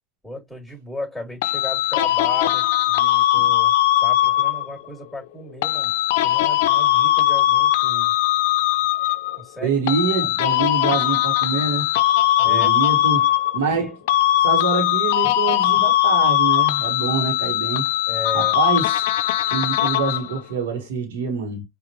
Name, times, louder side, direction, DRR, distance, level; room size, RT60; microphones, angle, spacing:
voice 1, 0.2-3.7 4.0-5.9 6.2-8.1 9.4-9.8 10.2-10.4 12.4-12.8 13.7-13.9 18.1-18.6, left 1 dB, 5° right, 2.7 m, -35 dB
sound 1, 1.4-4.8 5.6-9.4 9.9-13.8 14.1-20.4, left 14 dB, 75° left, 0.4 m, -20 dB
voice 2, 9.6-11.9 12.4-13.9 14.4-17.9 18.3-19.0 19.5-21.6, right 5 dB, 80° right, 1.2 m, -25 dB
5.1 x 2.5 x 3.0 m
hypercardioid pair, 80°, 0 cm